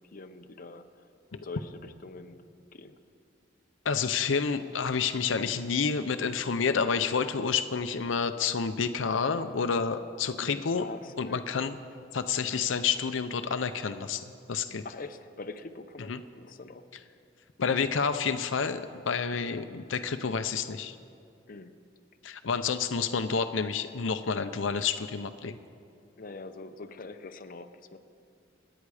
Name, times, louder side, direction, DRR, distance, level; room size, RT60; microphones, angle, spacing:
voice 1, 0.0-2.5 2.7-3.0 10.4-11.7 14.8-16.9 21.5-21.7 26.2-28.0, left 3 dB, 50° left, 7 dB, 0.7 m, -44 dB
voice 2, 3.8-10.9 11.2-11.8 12.1-14.8 16.1-16.2 17.6-21.0 22.2-25.6, left 5 dB, 80° left, 10 dB, 0.6 m, -29 dB
26.5 x 9.9 x 4.9 m, 2.4 s
head